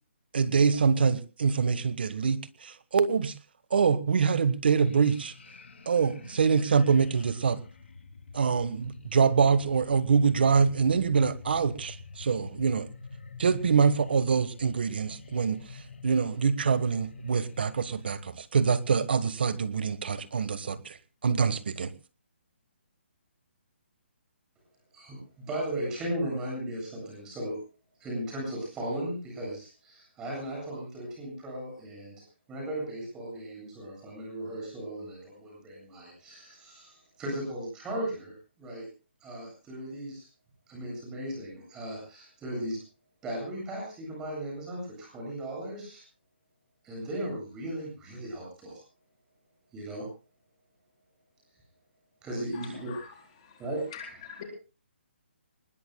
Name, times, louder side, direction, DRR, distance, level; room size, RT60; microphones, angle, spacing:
voice 1, 0.3-3.3 3.7-5.3 5.9-7.6 8.3-12.9 13.4-15.6 16.0-21.0 21.2-21.9, right 5 dB, 55° right, 14 dB, 1.4 m, -25 dB
sound 1, 4.6-18.1, left 4 dB, 75° left, 2.6 m, -47 dB
voice 2, 24.9-27.6 28.0-32.1 32.5-38.9 39.2-40.2 40.7-42.8 43.2-46.0 46.8-48.8 49.7-50.1 52.2-53.0 53.6-53.8, right 1 dB, 10° right, -1 dB, 7.9 m, -36 dB
voice 3, 52.5-53.1 53.4-53.6 53.9-54.4, left 7 dB, 30° left, 1 dB, 4.2 m, -44 dB
23.5 x 20.5 x 2.3 m, 0.36 s
hypercardioid pair, 170°, 7 cm